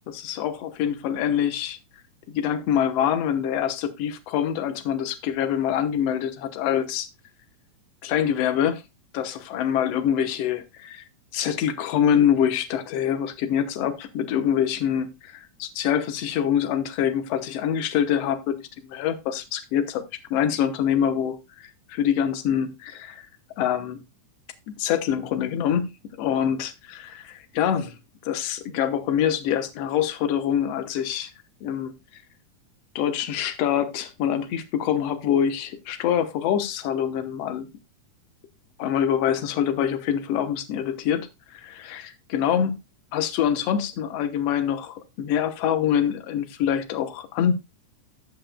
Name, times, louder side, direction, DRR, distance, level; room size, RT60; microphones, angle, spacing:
voice 1, 0.1-1.8 2.3-7.1 8.0-8.8 9.1-11.0 11.3-20.0 20.3-23.3 23.6-24.0 24.7-25.9 26.2-28.0 28.3-31.3 31.6-31.9 33.0-37.7 38.8-42.8 43.1-47.5, left 9 dB, 65° left, 1.9 m, -25 dB
13.5 x 7.7 x 2.2 m
omnidirectional pair, 3.6 m